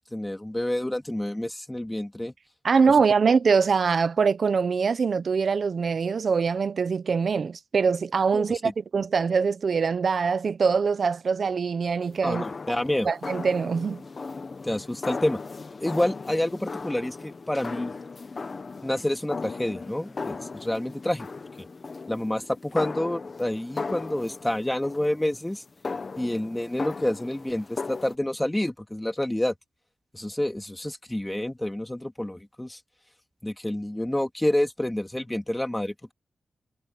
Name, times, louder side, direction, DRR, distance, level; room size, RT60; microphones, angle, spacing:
voice 1, 0.1-2.3 8.3-8.7 12.2-13.1 14.6-15.4 15.8-17.9 18.8-21.3 21.6-21.7 22.1-25.6 26.2-29.5 30.1-32.8 33.4-36.1, left 1 dB, 10° left, 2.7 m, -28 dB
voice 2, 2.6-12.4 13.0-14.0, right 5 dB, 55° right, 0.9 m, -23 dB
sound 1, 12.0-28.2, left 4 dB, 40° left, 1.1 m, -37 dB
wide cardioid pair, 150°, 0 cm